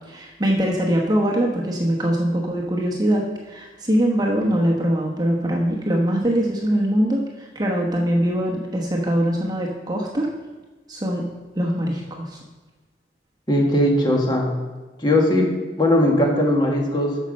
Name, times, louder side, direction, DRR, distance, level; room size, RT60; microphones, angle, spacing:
voice 1, 0.1-10.3 10.9-11.3 11.5-12.4, equal, 20° right, -1 dB, 1.0 m, -22 dB
voice 2, 13.5-14.5 15.0-15.5 15.8-17.2, left 1 dB, 25° left, -1 dB, 1.7 m, -19 dB
9.4 x 5.5 x 6.4 m, 1.3 s
head